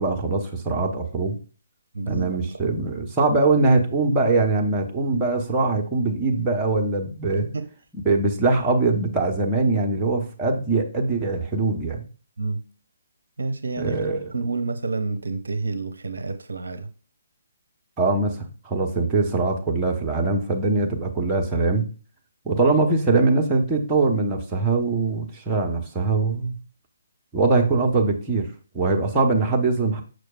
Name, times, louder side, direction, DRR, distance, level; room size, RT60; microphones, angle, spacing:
voice 1, 0.0-1.3 2.1-7.5 8.0-12.0 13.8-14.2 18.0-21.9 22.4-26.5 27.3-28.5 28.7-30.0, right 3 dB, 15° right, 1.0 m, -22 dB
voice 2, 1.9-2.7 7.4-7.6 12.4-12.6 13.4-16.9, right 3 dB, 65° right, 0.6 m, -29 dB
6.4 x 6.1 x 2.4 m
figure-of-eight pair, 140°, 0 cm